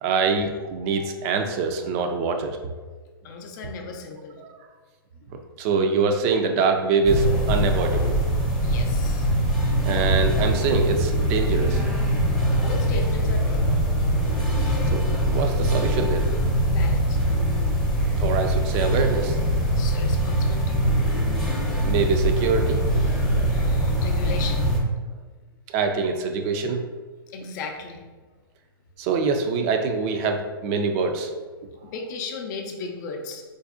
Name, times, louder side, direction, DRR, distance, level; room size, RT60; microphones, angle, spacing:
voice 1, 0.0-2.6 4.4-4.5 5.6-8.1 9.8-11.8 14.9-16.3 18.2-19.4 21.8-22.8 25.7-26.8 29.0-31.3, right 4 dB, 40° right, 5 dB, 0.4 m, -24 dB
voice 2, 3.2-4.4 8.6-9.3 12.6-13.6 16.7-17.2 19.8-20.8 23.5-24.7 27.3-28.0 31.9-33.4, left 4 dB, 50° left, 3 dB, 0.5 m, -36 dB
sound 1, 7.0-24.8, right 1 dB, ahead, 0.6 m, -22 dB
3.9 x 2.6 x 2.4 m, 1.4 s
hypercardioid pair, 125°, 12 cm